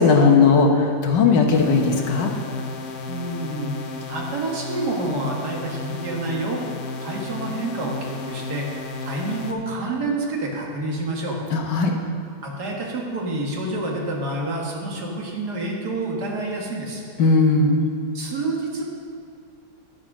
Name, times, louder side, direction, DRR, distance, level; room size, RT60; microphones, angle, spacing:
voice 1, 0.0-2.3 11.5-11.9 17.2-17.8, left 4 dB, 80° left, 2 dB, 1.8 m, -17 dB
sound 1, 1.5-9.5, left 3 dB, 55° left, 1.2 m, -33 dB
voice 2, 3.1-6.6 7.0-8.7 9.0-11.4 12.4-17.0 18.1-18.8, right 2 dB, 65° right, -1 dB, 2.2 m, -28 dB
11.5 x 7.5 x 6.0 m, 2.4 s
omnidirectional pair, 1.9 m